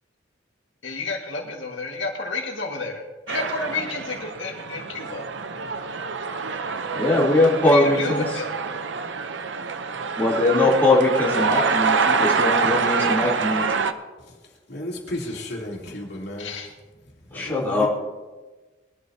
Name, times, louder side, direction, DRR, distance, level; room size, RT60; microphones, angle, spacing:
voice 1, 0.8-3.0 3.3-5.2 7.6-8.5 16.4-16.7, left 3 dB, 90° left, 0 dB, 1.8 m, -30 dB
sound 1, 3.3-13.9, right 5 dB, 70° right, 0.7 m, -26 dB
voice 2, 6.9-8.2 10.2-13.6 17.3-17.9, left 2 dB, 10° left, -6 dB, 3.2 m, -20 dB
voice 3, 14.2-16.5 17.0-17.9, left 1 dB, 60° left, -2 dB, 3.0 m, -34 dB
21.0 x 12.0 x 2.8 m, 1.2 s
head